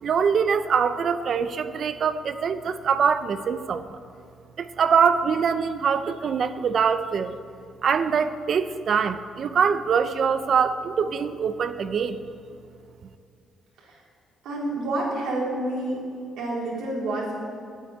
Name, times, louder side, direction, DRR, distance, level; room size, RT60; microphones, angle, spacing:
voice 1, 0.0-4.0 4.6-7.4 7.8-12.2, right 6 dB, 55° right, 11 dB, 0.6 m, -23 dB
voice 2, 14.4-16.0 16.4-17.4, right 1 dB, 85° right, -4 dB, 3.9 m, -28 dB
10.0 x 9.2 x 8.7 m, 2.4 s
cardioid pair, 90°, 0 cm